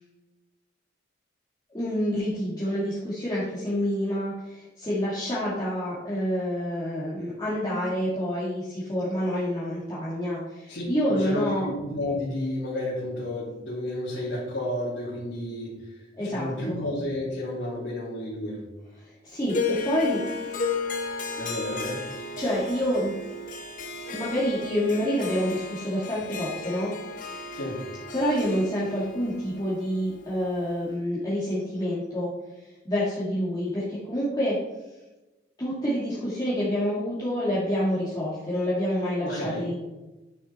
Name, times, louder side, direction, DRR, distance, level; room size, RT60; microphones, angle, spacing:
voice 1, 1.7-11.7 16.2-16.8 19.2-20.2 22.4-23.2 24.1-26.9 28.1-32.3 32.8-34.6 35.6-39.7, equal, 20° left, -9 dB, 2.2 m, -27 dB
voice 2, 10.7-18.6 21.4-22.0 27.5-27.8 39.2-39.7, left 1 dB, 75° left, -9 dB, 3.1 m, -31 dB
Harp, 19.5-30.8, left 3 dB, 45° left, 1.1 m, -34 dB
10.5 x 6.4 x 4.3 m, 1.1 s
head